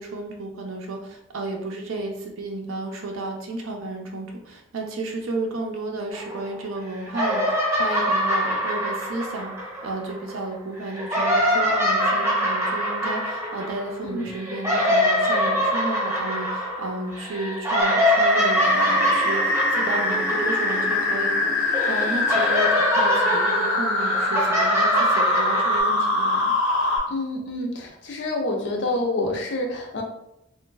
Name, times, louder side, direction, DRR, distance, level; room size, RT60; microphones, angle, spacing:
voice 1, 0.0-26.5, right 2 dB, 80° right, 0 dB, 0.5 m, -32 dB
sound 1, 6.1-6.8 7.1-10.3 10.9-21.4 21.7-25.8, equal, 15° right, 0.8 m, -24 dB
sound 2, 17.8-27.0, left 2 dB, 80° left, 0.8 m, -24 dB
sound 3, 18.6-23.0, left 1 dB, 10° left, 0.5 m, -38 dB
voice 2, 27.1-30.0, left 2 dB, 60° left, 2 dB, 0.5 m, -27 dB
3.0 x 2.4 x 2.2 m, 0.81 s
head